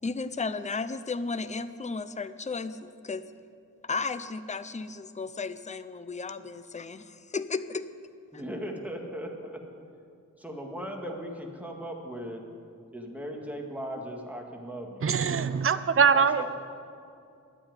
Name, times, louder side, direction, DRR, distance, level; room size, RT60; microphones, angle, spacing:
voice 1, 0.0-3.2 3.8-7.9, left 4 dB, 20° left, 12 dB, 0.5 m, -34 dB
voice 2, 8.3-9.6 10.4-12.4 12.9-15.1 16.1-16.5, equal, 5° right, 1 dB, 1.9 m, -38 dB
voice 3, 15.0-16.5, right 6 dB, 40° right, 12 dB, 0.6 m, -23 dB
11.5 x 8.8 x 9.6 m, 2.4 s
wide cardioid pair, 90°, 33 cm